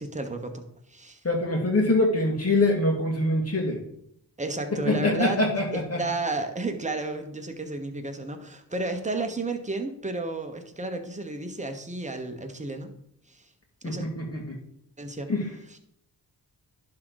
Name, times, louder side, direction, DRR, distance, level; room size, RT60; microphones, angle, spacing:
voice 1, 0.0-1.2 4.4-5.4 5.7-12.9 13.3-13.5 13.8-14.1 15.0-15.3 15.7-15.8, right 2 dB, 20° right, 5 dB, 1.2 m, -32 dB
voice 2, 1.2-3.8 4.9-6.0 13.8-14.6 15.3-15.4, left 2 dB, 35° left, 1 dB, 2.2 m, -24 dB
11.0 x 3.8 x 4.0 m, 0.73 s
cardioid pair, 65°, 40 cm